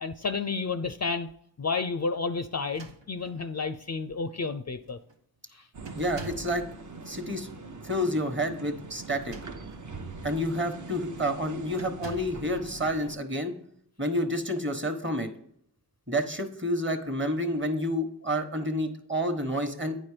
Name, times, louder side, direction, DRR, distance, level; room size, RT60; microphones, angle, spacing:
voice 1, 0.0-1.3 1.6-5.0 5.5-5.6, left 4 dB, 40° left, 10 dB, 0.4 m, -31 dB
sound 1, 2.6-3.5 4.4-4.5 4.8-5.2 5.8-6.6 9.0-9.9 10.4-10.6 11.7-12.5, right 4 dB, 90° right, 0.8 m, -45 dB
sound 2, 5.7-13.2, right 4 dB, 45° right, 0.7 m, -43 dB
voice 2, 6.0-6.6 7.0-7.5 7.8-9.3 10.2-13.5 14.0-15.3 16.1-20.0, equal, 25° right, 7 dB, 1.1 m, -29 dB
9.1 x 4.4 x 4.9 m, 0.70 s
wide cardioid pair, 45°, 42 cm